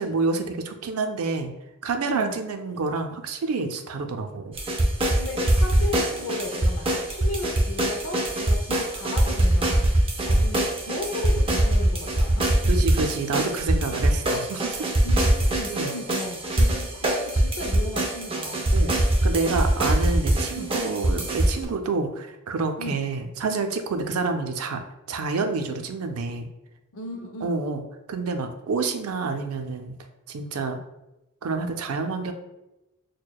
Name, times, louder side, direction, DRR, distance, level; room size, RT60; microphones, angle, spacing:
voice 1, 0.0-1.5 1.8-4.5 12.7-14.9 15.7-15.9 18.7-19.0 19.2-24.8 25.1-26.5 27.4-27.8 28.1-29.9 30.3-30.8 31.4-32.3, right 4 dB, 80° right, 6 dB, 0.4 m, -28 dB
voice 2, 2.0-2.4 5.2-9.9 10.2-12.5 15.0-18.7 20.5-20.7 22.8-23.1 26.9-27.6, left 2 dB, 65° left, 3 dB, 0.4 m, -35 dB
sound 1, 4.5-21.6, right 1 dB, 25° right, 0.5 m, -22 dB
6.3 x 2.2 x 2.2 m, 0.95 s
head